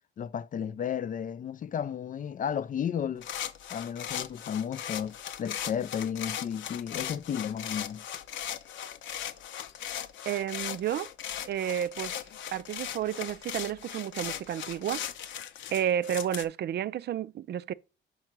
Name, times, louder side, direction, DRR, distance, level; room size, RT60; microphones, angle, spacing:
voice 1, 0.2-3.3 3.7-8.0, left 8 dB, 40° left, 0.4 m, -33 dB
sound 1, 3.2-16.4, left 10 dB, 70° left, 0.7 m, -38 dB
voice 2, 10.3-11.1 11.5-12.2 12.5-15.0 15.7-17.7, right 10 dB, 60° right, 0.4 m, -31 dB
5.5 x 4.7 x 5.9 m
cardioid pair, 90°, 20 cm